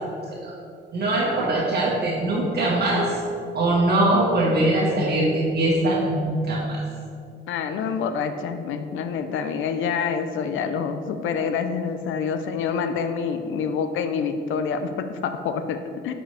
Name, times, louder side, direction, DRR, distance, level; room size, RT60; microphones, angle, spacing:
voice 1, 0.9-3.1 3.5-6.8, right 1 dB, 55° right, -6 dB, 1.6 m, -22 dB
voice 2, 7.5-16.1, left 6 dB, 80° left, 9 dB, 0.6 m, -27 dB
9.9 x 5.1 x 3.4 m, 2.4 s
cardioid pair, 90°, 20 cm